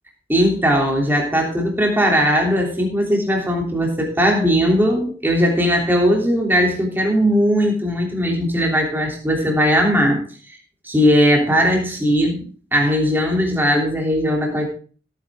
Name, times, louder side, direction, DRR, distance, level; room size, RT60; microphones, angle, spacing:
voice 1, 0.3-10.2 10.8-14.7, equal, 10° right, 0 dB, 3.2 m, -18 dB
16.5 x 9.3 x 3.7 m, 0.39 s
head